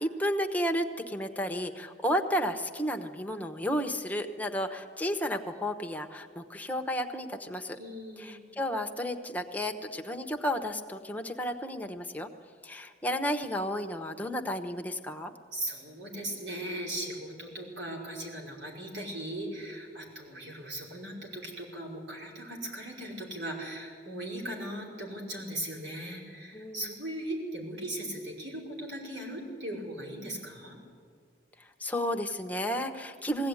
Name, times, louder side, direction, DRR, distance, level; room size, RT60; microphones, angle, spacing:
voice 1, 0.0-7.8 8.2-12.3 12.6-15.3 26.5-26.9 31.6-33.5, equal, 10° left, 4 dB, 1.1 m, -32 dB
voice 2, 7.7-8.6 15.5-30.8, right 1 dB, 90° right, -1 dB, 5.5 m, -38 dB
21.0 x 16.5 x 9.8 m, 2.1 s
head